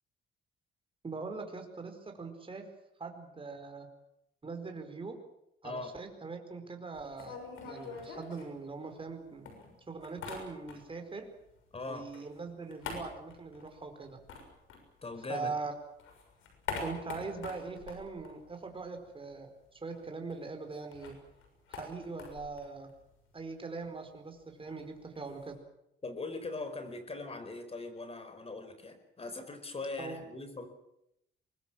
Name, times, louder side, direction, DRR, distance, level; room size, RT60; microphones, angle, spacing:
voice 1, 1.0-2.7 3.0-3.9 4.4-5.2 5.6-7.4 7.6-9.5 9.9-11.3 11.9-14.2 15.3-15.7 16.8-21.2 21.7-22.9 23.3-25.6 30.0-30.2, right 4 dB, 25° right, 5 dB, 4.8 m, -41 dB
sound 1, 6.9-9.1 9.5-11.1 11.4-15.5 15.8-19.1 19.4-19.5 19.7-25.5, left 5 dB, 85° left, 6.7 m, -46 dB
voice 2, 11.7-12.1 15.0-15.5 26.0-30.7, left 3 dB, 30° left, 9 dB, 4.8 m, -40 dB
24.0 x 20.5 x 7.6 m, 0.82 s
cardioid pair, 90°, 20 cm